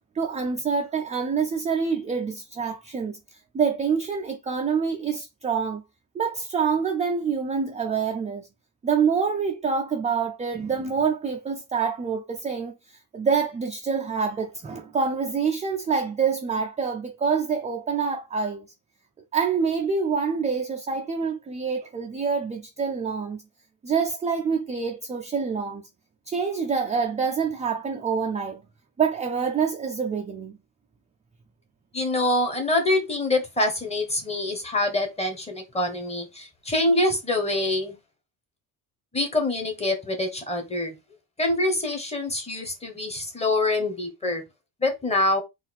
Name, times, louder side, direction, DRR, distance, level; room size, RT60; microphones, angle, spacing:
voice 1, 0.2-3.2 3.5-5.8 6.1-8.5 8.8-12.7 13.1-18.7 19.3-23.4 23.8-25.8 26.3-28.6 29.0-30.5, right 5 dB, 15° right, 0.3 m, -26 dB
voice 2, 31.9-37.9 39.1-40.9 41.4-44.4 44.8-45.4, left 2 dB, 15° left, 1.1 m, -25 dB
4.2 x 2.6 x 4.1 m
cardioid pair, 150°, 43 cm